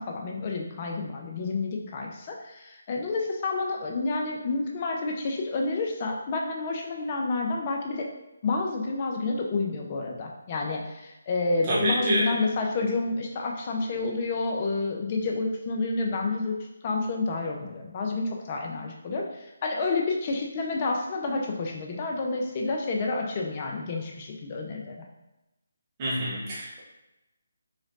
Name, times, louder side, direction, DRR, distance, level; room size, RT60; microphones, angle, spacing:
voice 1, 0.0-8.1 8.4-16.5 16.8-25.0, left 3 dB, 35° left, 0 dB, 0.6 m, -29 dB
voice 2, 11.6-12.3 26.0-26.8, right 1 dB, 30° right, -8 dB, 1.0 m, -27 dB
4.1 x 3.0 x 2.6 m, 0.97 s
figure-of-eight pair, 155°, 0 cm